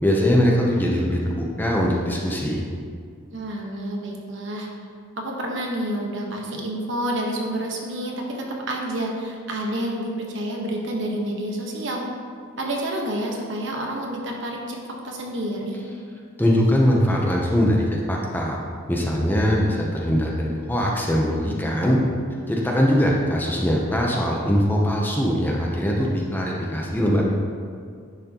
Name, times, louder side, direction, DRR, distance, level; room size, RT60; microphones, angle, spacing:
voice 1, 0.0-2.7 16.4-18.6 18.9-22.0 22.5-27.2, equal, 10° left, -2 dB, 0.7 m, -21 dB
voice 2, 3.3-4.7 5.2-12.0 12.6-14.8 15.0-15.8, right 1 dB, 60° right, 0 dB, 1.2 m, -29 dB
10.0 x 6.3 x 2.9 m, 2.1 s
head